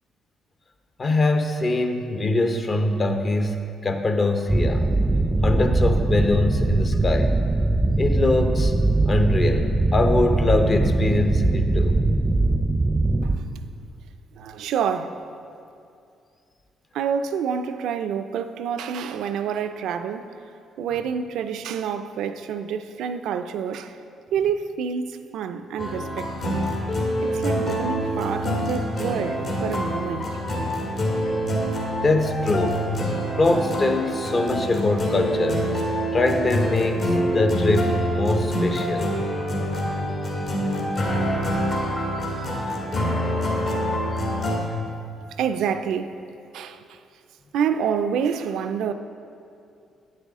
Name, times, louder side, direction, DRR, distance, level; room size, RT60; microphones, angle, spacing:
voice 1, 1.0-4.9 5.4-7.4 8.0-8.7 9.1-12.0 32.0-32.8 33.4-35.7 36.1-39.1 42.7-42.9, left 2 dB, 35° left, 0.7 m, -23 dB
sound 1, 4.5-13.4, right 2 dB, 15° right, 0.5 m, -21 dB
voice 2, 14.4-15.2 16.9-20.3 20.8-24.0 24.3-26.6 27.2-30.3 45.4-46.2 46.5-47.0 47.5-48.9, right 7 dB, 80° right, 0.4 m, -27 dB
sound 2, 25.8-44.6, equal, 60° left, 1.7 m, -26 dB
8.8 x 7.5 x 3.6 m
cardioid pair, 90°, 0 cm